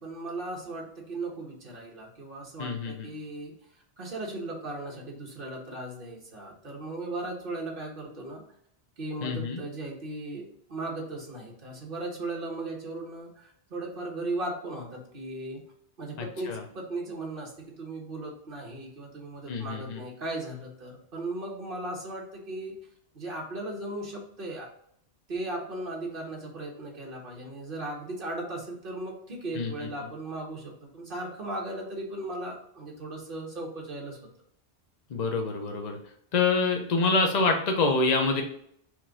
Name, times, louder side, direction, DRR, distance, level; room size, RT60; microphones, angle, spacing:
voice 1, 0.0-3.5 4.0-8.4 9.0-15.6 16.0-17.5 17.8-22.8 23.1-24.7 25.3-34.2, right 2 dB, 55° right, -2 dB, 1.5 m, -37 dB
voice 2, 2.6-3.1 9.2-9.6 16.5-16.6 19.5-20.0 29.5-29.9 35.1-36.0 36.3-38.4, left 3 dB, 45° left, 3 dB, 0.7 m, -26 dB
4.5 x 3.0 x 3.7 m, 0.68 s
omnidirectional pair, 1.1 m